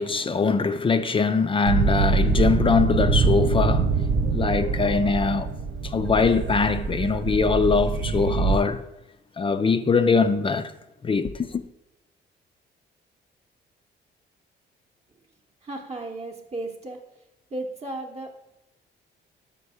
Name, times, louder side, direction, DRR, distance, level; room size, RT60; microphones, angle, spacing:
voice 1, 0.0-3.9 4.3-5.5 5.8-8.8 9.4-10.7 11.0-11.6, left 4 dB, 25° left, 0.4 m, -22 dB
sound 1, 1.6-8.6, right 4 dB, 70° right, 0.5 m, -24 dB
Bass guitar, 3.0-7.0, left 3 dB, 90° left, 0.7 m, -40 dB
sound 2, 3.8-5.9, right 8 dB, 85° right, 1.0 m, -43 dB
voice 2, 15.6-17.0 17.5-18.5, right 2 dB, 30° right, 0.8 m, -35 dB
5.3 x 5.1 x 4.8 m
cardioid pair, 90°, 20 cm